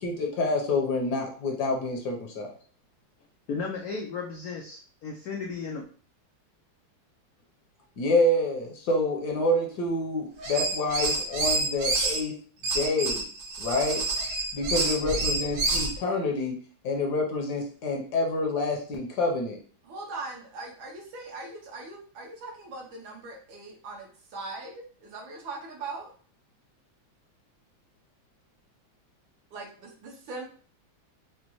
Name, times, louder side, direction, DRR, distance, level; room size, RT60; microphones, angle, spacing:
voice 1, 0.0-2.5 8.0-12.3 12.7-13.2 13.6-14.0 14.5-16.6 16.8-19.6, left 2 dB, 65° left, 0 dB, 1.2 m, -27 dB
voice 2, 3.5-5.8, left 5 dB, 85° left, 0 dB, 0.8 m, -34 dB
sound 1, 10.4-12.2 12.6-15.9, right 3 dB, 55° right, 1.2 m, -28 dB
voice 3, 19.8-26.1 29.5-30.4, right 3 dB, 75° right, -1 dB, 1.7 m, -40 dB
5.0 x 2.1 x 3.0 m, 0.43 s
omnidirectional pair, 2.2 m